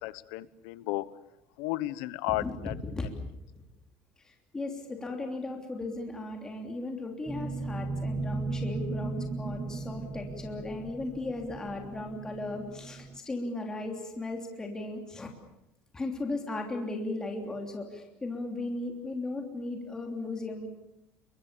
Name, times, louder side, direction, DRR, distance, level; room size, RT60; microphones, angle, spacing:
voice 1, 0.0-1.1 1.6-2.7, left 18 dB, 80° left, 16 dB, 1.2 m, -33 dB
voice 2, 2.3-3.1 3.5-3.6 4.2-15.3 15.9-20.7, left 2 dB, 10° left, 2 dB, 3.1 m, -36 dB
sound 1, 7.3-13.2, right 3 dB, 5° right, 1.5 m, -36 dB
28.0 x 24.0 x 6.9 m, 0.84 s
cardioid pair, 175°, 6 cm